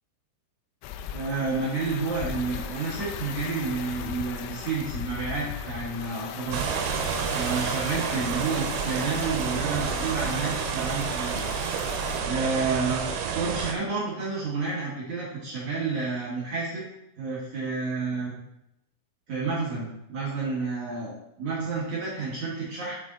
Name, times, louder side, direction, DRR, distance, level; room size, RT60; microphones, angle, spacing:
sound 1, 0.8-12.2, left 8 dB, 85° left, 2.6 m, -38 dB
voice 1, 1.1-6.6 7.3-11.4 12.2-13.0 13.3-16.8 17.2-18.4 19.3-23.0, right 4 dB, 65° right, -6 dB, 1.9 m, -30 dB
sound 2, 6.5-13.8, right 6 dB, 85° right, 3.1 m, -29 dB
6.8 x 6.2 x 3.9 m, 0.83 s
omnidirectional pair, 5.7 m